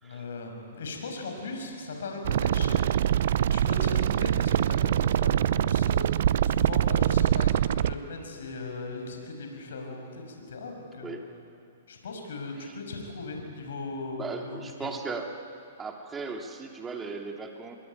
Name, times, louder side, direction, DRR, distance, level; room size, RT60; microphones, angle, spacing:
voice 1, 0.0-3.0 3.4-11.2 11.9-14.9, left 3 dB, 80° left, 3 dB, 6.2 m, -38 dB
sound 1, 2.2-7.9, right 10 dB, 65° right, 0.6 m, -24 dB
voice 2, 14.2-15.3 15.8-17.8, right 4 dB, 15° right, 3 dB, 2.8 m, -37 dB
27.0 x 22.0 x 9.7 m, 2.5 s
hypercardioid pair, 135°, 0 cm